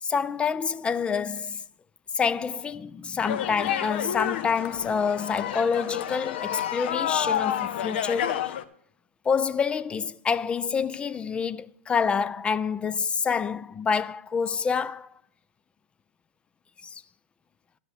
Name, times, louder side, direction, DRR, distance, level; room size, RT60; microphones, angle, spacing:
voice 1, 0.0-1.6 2.1-8.5 9.2-15.1 16.8-17.0, left 6 dB, 15° left, 0.4 m, -27 dB
sound 1, 3.2-8.6, left 10 dB, 60° left, 0.8 m, -29 dB
11.0 x 5.7 x 7.6 m
hypercardioid pair, 115°, 6 cm